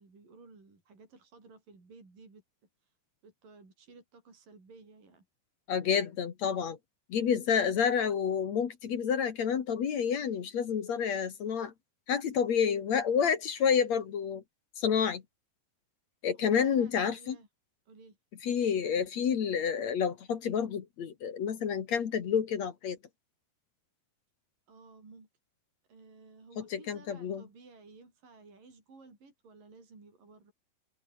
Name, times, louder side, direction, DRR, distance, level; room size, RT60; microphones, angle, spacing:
voice 1, 0.0-2.4 2.8-2.9 3.2-5.3 16.3-17.5 17.9-18.2 24.7-25.3 25.9-30.5, right 3 dB, 50° right, 9.2 m, -55 dB
voice 2, 5.7-6.8 7.1-11.7 12.1-14.4 14.8-15.2 16.2-17.4 18.4-23.0 26.6-27.4, left 7 dB, 50° left, 2.4 m, -29 dB
omnidirectional pair, 5.1 m